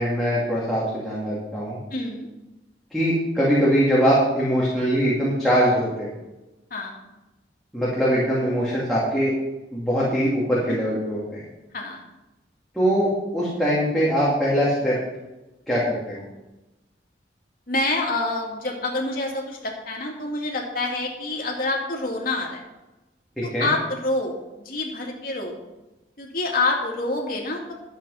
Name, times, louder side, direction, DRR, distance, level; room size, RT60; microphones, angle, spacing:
voice 1, 0.0-1.8 2.9-6.1 7.7-9.3 9.7-11.4 12.7-15.0 15.7-16.2 23.4-23.7, equal, ahead, -8 dB, 2.7 m, -22 dB
voice 2, 1.9-2.3 6.7-7.0 10.7-10.9 11.7-12.0 17.7-22.6 23.4-25.6 26.2-27.7, left 2 dB, 50° left, 0 dB, 2.4 m, -27 dB
12.0 x 8.1 x 5.7 m, 1.0 s
head